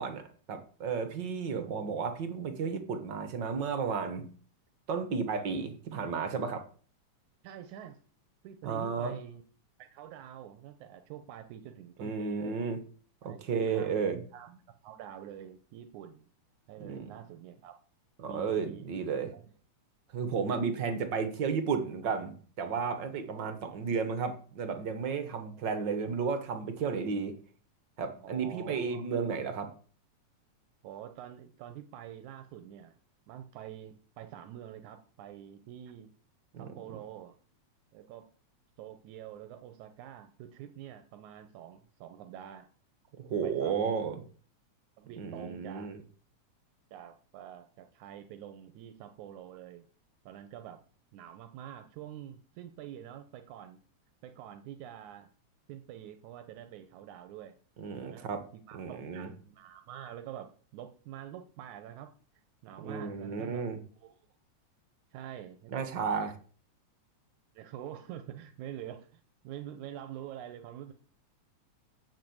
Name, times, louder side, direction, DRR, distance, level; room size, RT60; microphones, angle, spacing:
voice 1, 0.0-4.3 4.9-6.7 8.6-9.2 12.0-12.8 13.2-14.2 16.8-17.1 18.2-19.3 20.1-27.3 28.0-29.7 36.5-37.0 43.2-44.2 45.2-46.0 57.8-58.4 58.7-59.3 62.8-63.8 65.7-66.3, right 5 dB, 55° right, 1.4 m, -33 dB
voice 2, 7.4-8.0 8.4-9.4 9.8-12.6 13.2-13.4 13.7-14.0 14.3-14.5 14.8-16.3 16.7-17.7 18.3-18.9 19.3-19.4 23.7-23.9 28.2-29.1 30.8-33.0 33.3-36.1 36.6-37.4 37.9-38.3 38.8-42.7 43.4-44.0 45.0-45.9 46.9-49.8 50.3-50.8 51.1-53.8 54.2-55.3 55.7-57.5 58.0-58.3 58.7-62.1 62.6-63.6 64.0-64.2 65.1-65.9 67.6-70.9, right 10 dB, 90° right, 2.3 m, -46 dB
7.6 x 7.5 x 7.8 m
omnidirectional pair, 3.3 m